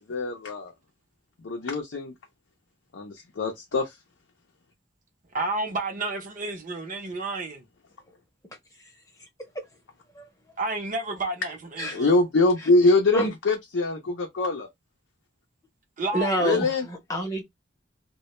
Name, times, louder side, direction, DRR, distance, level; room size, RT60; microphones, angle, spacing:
voice 1, 0.1-0.7 1.4-2.1 2.9-3.9 11.9-14.7 16.4-16.9, left 2 dB, 75° left, 0.5 m, -23 dB
voice 2, 5.3-7.6 10.6-12.2 16.0-16.5, right 2 dB, 45° right, 0.7 m, -31 dB
voice 3, 16.1-17.4, equal, 20° left, 0.7 m, -28 dB
2.2 x 2.1 x 2.9 m
head